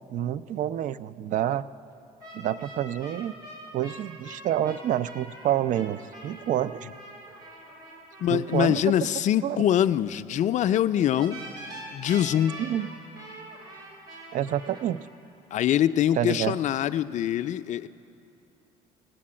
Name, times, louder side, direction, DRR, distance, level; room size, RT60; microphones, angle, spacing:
voice 1, 0.1-1.6 2.3-3.3 3.7-6.9 8.3-8.9 9.4-9.6 12.6-12.9 14.3-15.0 16.2-16.6, right 11 dB, 55° right, 16 dB, 0.4 m, -28 dB
sound 1, 2.2-8.7 11.2-14.8, right 1 dB, 80° right, 4.2 m, -44 dB
voice 2, 8.2-11.4 11.9-12.6 15.5-17.9, left 11 dB, 50° left, 12 dB, 0.4 m, -24 dB
17.5 x 7.5 x 8.6 m, 2.9 s
cardioid pair, 110°, 16 cm